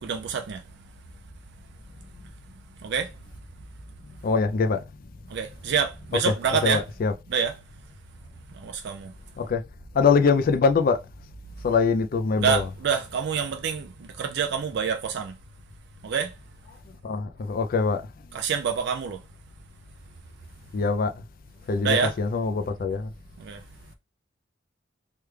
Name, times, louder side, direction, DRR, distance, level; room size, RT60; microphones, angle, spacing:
voice 1, 0.0-0.6 2.8-3.1 5.3-6.8 7.3-7.5 8.5-9.1 12.4-15.3 16.0-16.3 18.3-19.2 21.8-22.1 23.4-23.6, right 7 dB, 60° right, 0.4 m, -27 dB
voice 2, 4.2-4.8 6.2-6.3 6.6-7.1 9.4-9.6 9.9-11.0 11.6-12.6 17.0-18.0 20.7-21.2 21.7-23.1, left 5 dB, 50° left, 0.3 m, -23 dB
3.2 x 2.3 x 3.1 m
head